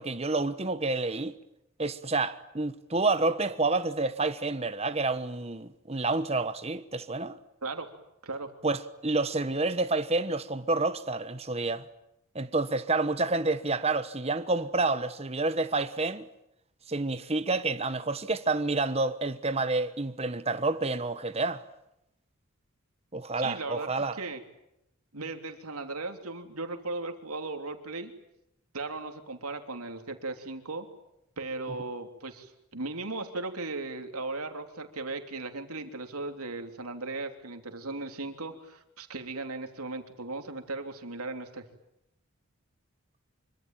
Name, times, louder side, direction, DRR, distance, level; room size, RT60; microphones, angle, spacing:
voice 1, 0.0-1.4 1.8-7.4 8.6-11.9 12.3-16.3 16.9-21.6 23.1-24.2, right 3 dB, 30° right, 1.2 m, -29 dB
voice 2, 7.6-7.9 8.2-8.5 23.4-24.4 25.1-28.1 28.7-30.9 31.4-41.6, right 3 dB, 90° right, 3.3 m, -37 dB
26.0 x 24.5 x 9.1 m
head